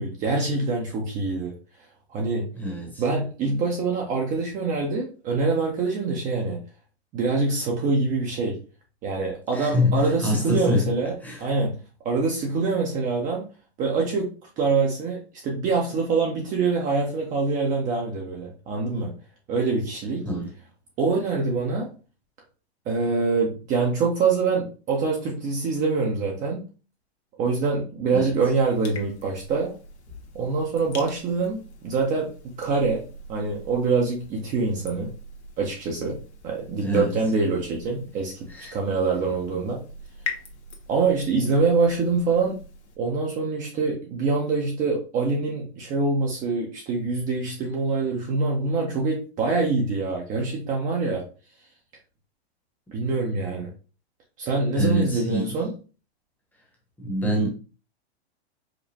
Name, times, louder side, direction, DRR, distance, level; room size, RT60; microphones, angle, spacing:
voice 1, 0.0-1.5 2.1-2.5 3.0-6.6 7.1-8.6 9.0-11.8 12.0-13.4 13.8-19.1 19.5-20.3 21.0-21.9 22.9-26.6 27.4-29.7 30.3-32.3 32.6-33.0 33.3-35.1 35.6-36.2 36.4-39.8 40.9-42.6 43.0-51.3 52.9-53.7 54.4-55.7, right 4 dB, 25° right, 0.7 m, -25 dB
voice 2, 2.6-3.0 9.5-11.0 11.2-11.5 20.2-20.5 28.1-28.3 36.8-37.2 38.5-38.8 54.7-55.6 57.0-57.5, left 1 dB, 5° left, 1.0 m, -25 dB
sound 1, 28.3-43.0, left 3 dB, 90° left, 1.1 m, -43 dB
5.1 x 2.2 x 2.8 m
hypercardioid pair, 135°, 33 cm